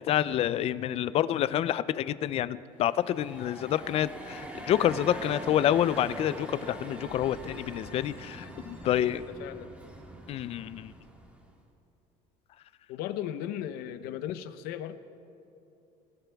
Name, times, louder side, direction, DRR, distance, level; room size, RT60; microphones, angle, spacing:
voice 1, 0.0-9.2 10.3-10.9, left 11 dB, 40° left, 16 dB, 0.4 m, -28 dB
sound 1, 2.8-11.5, equal, 10° right, 1.6 m, -43 dB
voice 2, 8.8-9.7 12.9-15.0, left 11 dB, 75° left, 11 dB, 0.9 m, -37 dB
25.5 x 15.5 x 3.5 m, 2.7 s
cardioid pair, 160°, 16 cm